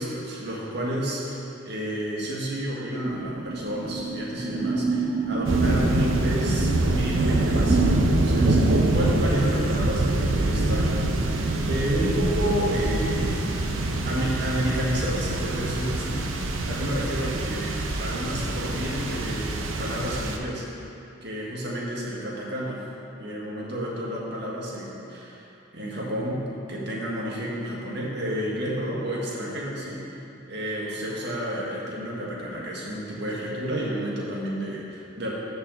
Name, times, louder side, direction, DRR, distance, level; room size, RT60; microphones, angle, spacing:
voice 1, 0.0-13.5 14.0-16.2 16.7-20.6 21.2-22.8 23.1-25.5 25.7-26.4 26.7-30.0 30.5-35.3, equal, 55° right, -4 dB, 1.7 m, -30 dB
sound 1, 3.0-8.6, right 3 dB, 20° right, 0.5 m, -28 dB
sound 2, 5.5-20.4, right 2 dB, 85° right, 0.7 m, -25 dB
13.0 x 5.6 x 4.0 m, 2.8 s
head